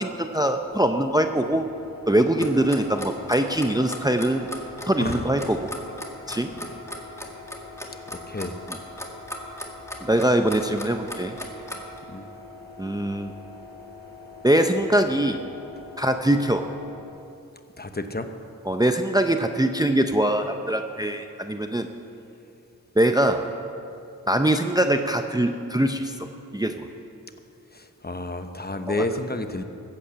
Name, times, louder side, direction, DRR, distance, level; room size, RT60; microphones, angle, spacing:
voice 1, 0.0-1.7 2.1-4.5 4.9-5.7 6.3-6.5 10.1-11.4 12.8-13.3 14.4-15.4 16.0-16.7 18.7-21.9 23.0-23.5 24.3-26.1 26.5-26.8 28.9-29.0, right 1 dB, 10° right, 6 dB, 0.6 m, -22 dB
sound 1, 0.6-17.1, left 2 dB, 75° right, 2.1 m, -44 dB
Clock, 2.4-12.0, equal, 5° left, 2.0 m, -36 dB
voice 2, 5.0-5.5 6.6-6.7 8.1-8.6 10.6-10.7 12.1-12.3 17.8-18.3 27.7-29.6, left 2 dB, 25° left, 7 dB, 0.9 m, -31 dB
15.0 x 8.6 x 7.5 m, 2.7 s
cardioid pair, 55°, 37 cm